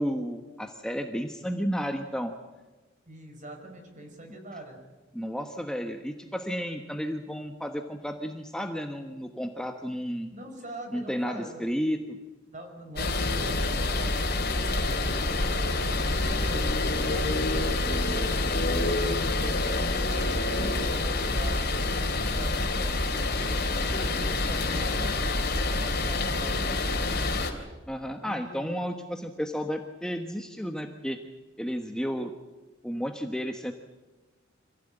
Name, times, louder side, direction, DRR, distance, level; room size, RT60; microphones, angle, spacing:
voice 1, 0.0-2.3 5.1-10.3 10.9-12.2 27.9-31.2 31.6-32.3 32.8-33.7, equal, 5° left, 4 dB, 1.2 m, -32 dB
voice 2, 3.1-4.8 10.3-11.6 12.5-16.6 17.1-18.9 19.3-23.1 23.4-27.4 28.2-28.8, right 1 dB, 40° right, 5 dB, 5.0 m, -43 dB
sound 1, 13.0-27.5, left 2 dB, 55° left, 3.1 m, -27 dB
26.5 x 16.0 x 9.0 m, 1.2 s
head